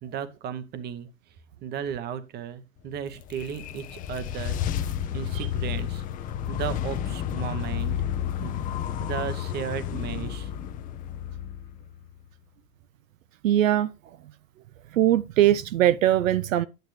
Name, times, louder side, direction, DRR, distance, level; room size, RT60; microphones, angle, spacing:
voice 1, 0.0-1.1 1.6-4.6 5.1-6.0 6.5-8.0 8.4-8.6 9.0-10.5, right 8 dB, 25° right, 0.9 m, -35 dB
sound 1, 2.9-12.2, left 10 dB, 20° left, 0.5 m, -31 dB
voice 2, 13.4-13.9 14.9-16.7, right 12 dB, 70° right, 0.6 m, -21 dB
9.2 x 8.8 x 3.2 m
hypercardioid pair, 110°, 42 cm